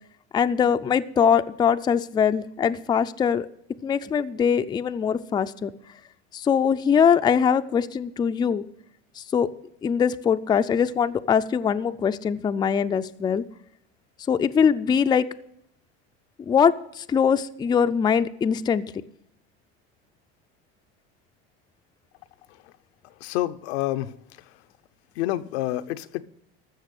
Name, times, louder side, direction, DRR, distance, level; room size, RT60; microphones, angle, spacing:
voice 1, 0.3-3.5 3.8-5.7 6.3-8.6 9.2-9.5 9.8-13.4 14.3-15.3 16.4-18.9, left 7 dB, 15° left, 10 dB, 0.4 m, -22 dB
voice 2, 23.2-24.1 25.2-26.2, left 15 dB, 85° left, 10 dB, 0.7 m, -28 dB
14.5 x 6.6 x 6.6 m, 0.74 s
supercardioid pair, 125°, 31 cm